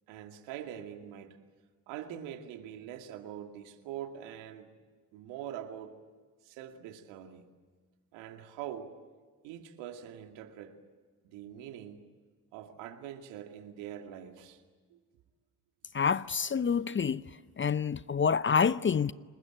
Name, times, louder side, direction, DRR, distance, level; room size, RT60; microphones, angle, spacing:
voice 1, 0.1-1.4 1.9-4.7 5.1-6.0 6.4-7.4 8.1-9.0 9.4-10.8 11.2-12.1 12.5-14.6 14.9-15.0, right 10 dB, 75° right, 2.4 m, -44 dB
voice 2, 15.9-17.2 17.6-19.1, left 6 dB, 25° left, 0.7 m, -27 dB
29.5 x 20.0 x 8.9 m
hypercardioid pair, 50°, 44 cm